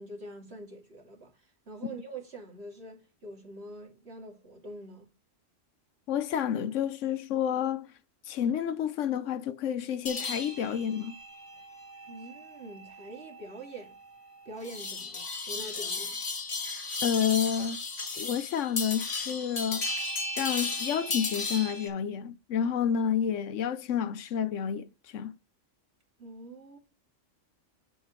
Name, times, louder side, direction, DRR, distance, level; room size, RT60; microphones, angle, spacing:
voice 1, 0.0-5.1 12.1-14.0 14.4-16.2 26.2-26.8, right 1 dB, 55° right, 2.6 m, -45 dB
voice 2, 6.1-7.9 8.3-11.2 17.0-17.8 18.2-19.9 20.4-25.4, left 8 dB, 75° left, 1.0 m, -30 dB
sound 1, 10.1-21.9, left 3 dB, 55° left, 2.0 m, -35 dB
10.5 x 7.3 x 3.1 m
omnidirectional pair, 1.3 m